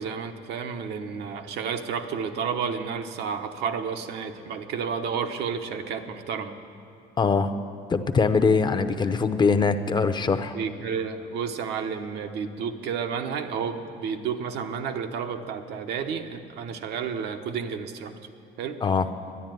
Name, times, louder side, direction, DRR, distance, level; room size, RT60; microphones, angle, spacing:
voice 1, 0.0-6.6 10.5-18.1 18.6-18.8, right 6 dB, 80° right, 6 dB, 1.0 m, -31 dB
voice 2, 7.2-7.5 7.9-10.5 18.8-19.1, left 4 dB, 25° left, 10 dB, 0.7 m, -22 dB
11.5 x 10.0 x 9.2 m, 2.5 s
cardioid pair, 110°, 17 cm